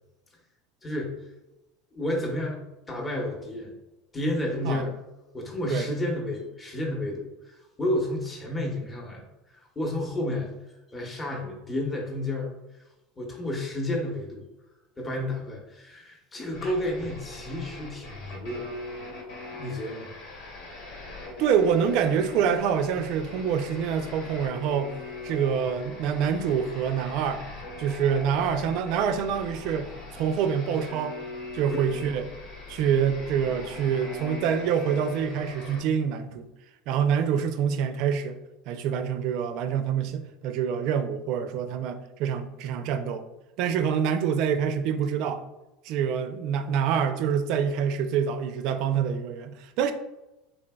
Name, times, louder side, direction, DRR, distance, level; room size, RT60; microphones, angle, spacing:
voice 1, 0.8-1.1 1.9-2.6 2.9-3.7 4.1-5.0 5.3-9.2 9.5-10.5 10.9-12.5 13.2-14.4 15.0-18.7 19.6-20.1, left 1 dB, 20° left, -1 dB, 0.8 m, -31 dB
sound 1, 16.5-35.8, left 2 dB, 70° left, 1.2 m, -41 dB
voice 2, 21.4-24.9 25.2-27.4 27.8-29.9 30.1-31.2 31.5-32.3 32.7-36.5 36.9-38.4 38.7-43.2 43.6-45.4 45.8-49.9, right 7 dB, 60° right, 9 dB, 0.4 m, -26 dB
3.8 x 3.4 x 2.2 m, 1.0 s
supercardioid pair, 105°, 0 cm